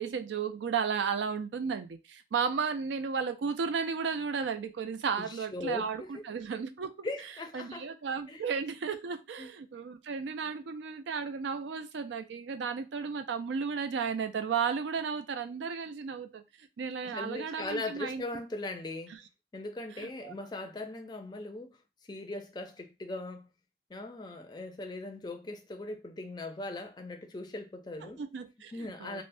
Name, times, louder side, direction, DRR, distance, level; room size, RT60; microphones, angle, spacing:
voice 1, 0.0-7.1 7.5-16.4 16.8-18.2 19.1-19.2 20.0-20.3 28.0-29.2, right 6 dB, 85° right, 0.4 m, -34 dB
voice 2, 5.2-6.2 7.0-7.9 8.3-8.4 9.4-9.5 17.0-19.2 19.5-21.8 22.1-23.5 23.9-28.2 28.7-29.2, left 2 dB, 25° left, 0.4 m, -39 dB
3.3 x 2.0 x 2.5 m
head